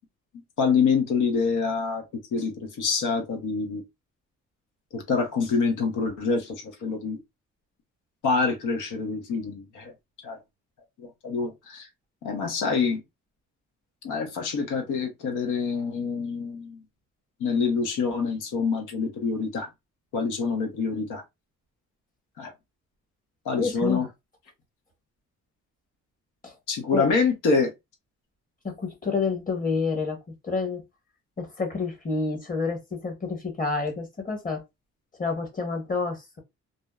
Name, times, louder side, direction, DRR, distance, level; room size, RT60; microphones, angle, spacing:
voice 1, 0.6-2.0 2.3-3.8 4.9-7.2 8.2-9.9 10.2-10.4 11.0-11.9 12.2-13.0 14.0-16.8 17.4-19.7 20.1-21.2 22.4-22.5 23.4-24.1 26.7-27.7, left 5 dB, 80° left, 0.9 m, -26 dB
voice 2, 23.6-24.1 26.4-26.5 26.9-27.0 28.6-30.2 30.4-30.8 31.4-34.6 35.2-36.4, left 4 dB, 30° left, 1.1 m, -28 dB
2.6 x 2.1 x 2.2 m
cardioid pair, 90°, 30 cm